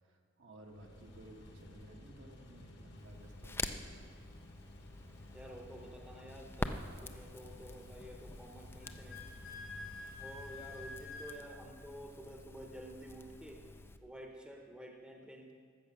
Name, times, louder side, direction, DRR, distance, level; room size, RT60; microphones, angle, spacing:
voice 1, 0.0-4.1, right 1 dB, 65° right, 1 dB, 1.4 m, -56 dB
sound 1, 0.6-11.5, left 1 dB, 55° left, 1.2 m, -55 dB
Crackle, 3.0-14.0, left 2 dB, 10° left, 0.4 m, -46 dB
voice 2, 5.3-9.2 10.2-13.6 14.0-15.5, equal, 5° right, 1 dB, 0.9 m, -51 dB
Wind instrument woodwind instrument, 8.8-11.4, left 3 dB, 85° left, 1.7 m, -48 dB
13.5 x 7.3 x 6.1 m, 2.1 s
head